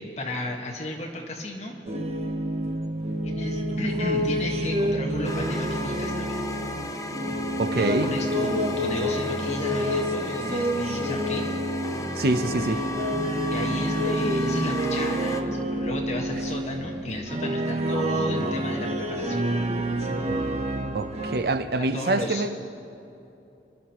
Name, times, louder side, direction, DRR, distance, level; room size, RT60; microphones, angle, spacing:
voice 1, 0.0-1.7 3.2-6.5 7.8-11.4 13.5-19.5 21.8-22.5, left 1 dB, 40° left, 1.5 m, -34 dB
sound 1, 1.9-21.4, equal, 35° right, 0.9 m, -28 dB
sound 2, 5.2-15.4, left 2 dB, 20° left, 0.5 m, -35 dB
voice 2, 7.6-8.2 12.2-12.8 20.3-20.4 20.9-22.6, right 2 dB, 60° right, 0.6 m, -25 dB
28.0 x 11.0 x 3.0 m
head